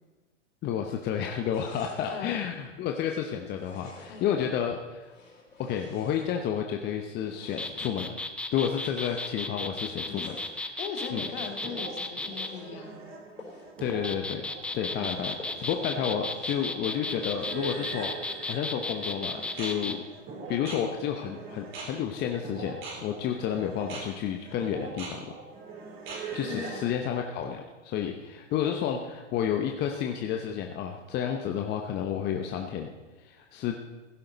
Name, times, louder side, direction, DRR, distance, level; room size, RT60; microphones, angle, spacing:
voice 1, 0.6-5.1 5.6-8.1 8.5-10.7 11.1-11.3 13.8-14.5 14.7-20.0 20.5-25.3 26.3-32.9 33.2-33.8, left 9 dB, 25° left, 3 dB, 0.9 m, -31 dB
sound 1, 1.5-2.3 3.5-4.4 5.0-6.6 7.2-7.9 8.5-9.4 10.0-10.6 11.2-11.7 12.2-12.7 13.4-13.7 14.1-14.2 14.6-14.7 15.4-15.9 16.2-16.7, left 3 dB, 85° left, 4.5 m, -50 dB
sound 2, 7.5-12.5 13.8-20.0, left 2 dB, 5° left, 0.5 m, -34 dB
voice 2, 10.8-13.0 15.0-15.2 26.4-26.9, left 6 dB, 50° left, 2 dB, 2.4 m, -39 dB
sound 3, 11.0-26.9, right 4 dB, 30° right, 3.4 m, -42 dB
16.0 x 11.5 x 4.0 m, 1.2 s
figure-of-eight pair, 105°, 37 cm